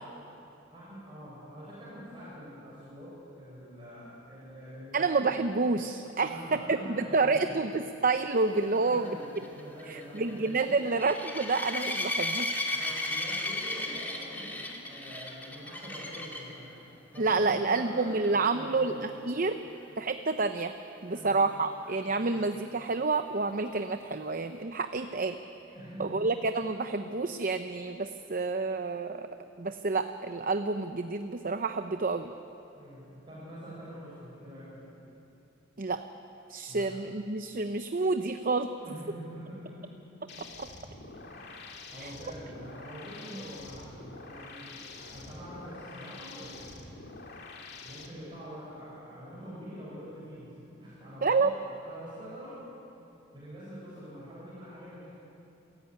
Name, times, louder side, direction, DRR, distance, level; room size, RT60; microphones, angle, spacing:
voice 1, 0.7-5.1 6.2-7.6 8.7-9.3 9.5-10.8 12.7-16.7 17.1-19.0 21.1-21.4 22.1-22.4 25.7-26.3 32.8-34.8 36.7-36.9 38.8-39.9 41.3-46.8 47.8-50.5 50.8-51.5 51.8-52.6 53.3-55.1, equal, 25° right, -9 dB, 7.2 m, -45 dB
voice 2, 4.9-9.1 9.9-12.5 17.2-19.6 20.0-20.7 21.0-25.4 26.0-29.3 29.6-32.3 35.8-36.0 36.5-38.7 40.6-40.7 42.0-42.1 51.2-51.5, right 3 dB, 45° right, 8 dB, 0.7 m, -29 dB
sound 1, 8.6-16.6 17.1-17.5 17.7-17.8 18.2-18.3 21.9-22.0, left 2 dB, 10° left, 2.5 m, -35 dB
sound 2, 40.3-48.1, left 3 dB, 55° left, 2.6 m, -46 dB
27.5 x 16.0 x 9.5 m, 2.9 s
head